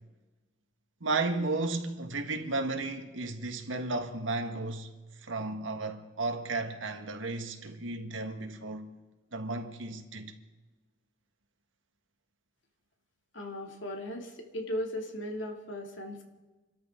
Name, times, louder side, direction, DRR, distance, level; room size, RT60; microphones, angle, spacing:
voice 1, 1.0-4.9 5.2-8.9 9.3-10.3, right 3 dB, 85° right, 1.6 m, -34 dB
voice 2, 13.3-16.2, left 1 dB, 75° left, 2.6 m, -37 dB
27.5 x 13.0 x 3.7 m
head